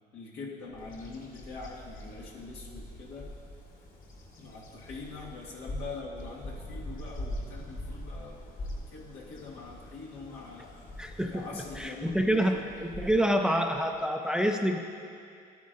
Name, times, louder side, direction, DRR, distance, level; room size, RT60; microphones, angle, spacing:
voice 1, 0.1-3.3 4.4-10.7 11.2-12.6, left 4 dB, 80° left, -5 dB, 1.9 m, -43 dB
Bird vocalization bird call bird song, 0.7-14.0, equal, 55° left, 1.9 m, -43 dB
voice 2, 11.0-14.8, equal, 5° right, 3 dB, 0.5 m, -27 dB
12.5 x 9.3 x 2.6 m, 2.3 s
cardioid pair, 110°, 17 cm